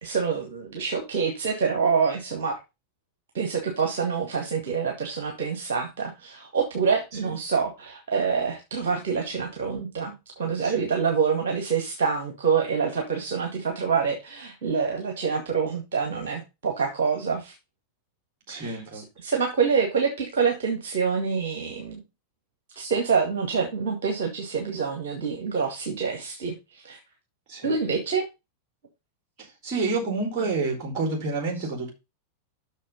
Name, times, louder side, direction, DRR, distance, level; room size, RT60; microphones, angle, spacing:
voice 1, 0.0-2.6 3.3-17.5 18.5-22.0 22.7-27.0 27.6-28.2, right 5 dB, 55° right, 3 dB, 2.0 m, -26 dB
voice 2, 18.5-19.0 27.5-27.7 29.4-31.9, right 3 dB, 35° right, 1 dB, 4.5 m, -29 dB
6.6 x 6.4 x 5.4 m, 0.25 s
figure-of-eight pair, 90°, 0 cm